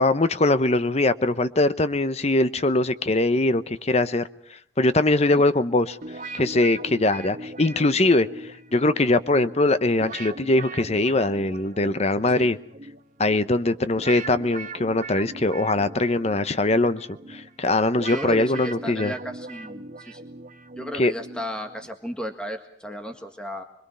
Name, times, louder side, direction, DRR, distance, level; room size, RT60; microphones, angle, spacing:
voice 1, 0.0-4.3 4.8-6.0 6.3-12.6 13.2-19.1 20.9-21.1, left 2 dB, 35° left, 12 dB, 0.9 m, -22 dB
sound 1, 6.0-21.9, right 2 dB, 45° right, 1.2 m, -40 dB
voice 2, 18.1-20.3 20.8-23.6, equal, 5° left, 4 dB, 1.7 m, -34 dB
25.5 x 22.5 x 5.6 m, 0.68 s
head